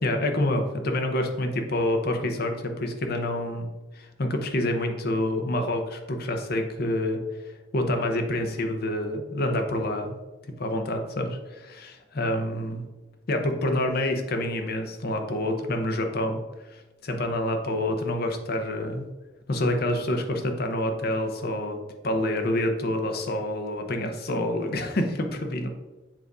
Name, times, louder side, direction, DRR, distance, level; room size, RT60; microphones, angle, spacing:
voice 1, 0.0-3.7 3.9-7.2 7.7-10.2 10.6-12.8 13.3-16.4 16.7-19.0 19.5-21.8 22.0-25.7, left 1 dB, 55° left, 4 dB, 0.8 m, -27 dB
7.5 x 2.6 x 4.7 m, 1.2 s
head